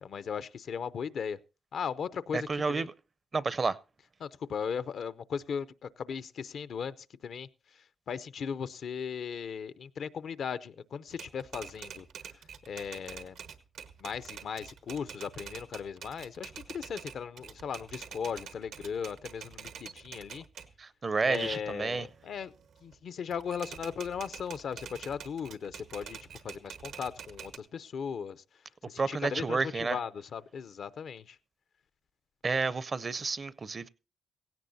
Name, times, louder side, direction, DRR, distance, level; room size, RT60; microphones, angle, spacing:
voice 1, 0.0-1.4 1.7-2.9 4.2-12.1 12.7-13.4 14.0-20.4 21.2-22.5 22.8-26.2 26.4-28.4 28.9-31.4, left 7 dB, 70° left, 0.6 m, -37 dB
voice 2, 2.3-2.9 3.3-3.8 20.8-22.1 29.0-30.0 32.4-33.9, right 4 dB, 40° right, 0.6 m, -30 dB
Typewriter, 11.1-20.7 21.2-22.9 23.3-27.6, right 7 dB, 85° right, 1.2 m, -46 dB
16.5 x 16.5 x 2.7 m
cardioid pair, 80°, 0 cm